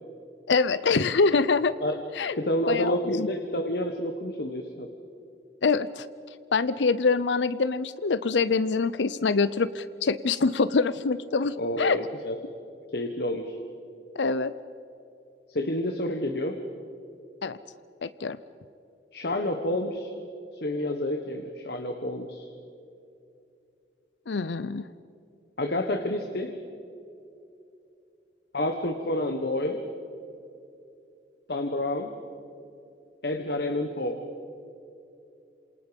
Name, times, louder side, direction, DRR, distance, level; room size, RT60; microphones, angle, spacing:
voice 1, 0.5-1.7 2.2-2.4 2.7-3.3 5.6-6.1 6.5-12.0 14.2-14.5 17.4-17.6 18.0-18.4 24.3-24.9, left 4 dB, 85° left, 15 dB, 0.6 m, -25 dB
voice 2, 2.4-4.9 11.6-12.4 12.9-13.6 15.5-16.6 19.1-20.1 20.5-22.5 25.6-26.5 28.5-29.8 31.5-32.1 33.2-34.2, left 1 dB, 65° left, 5 dB, 1.5 m, -29 dB
27.5 x 27.5 x 5.3 m, 2.7 s
head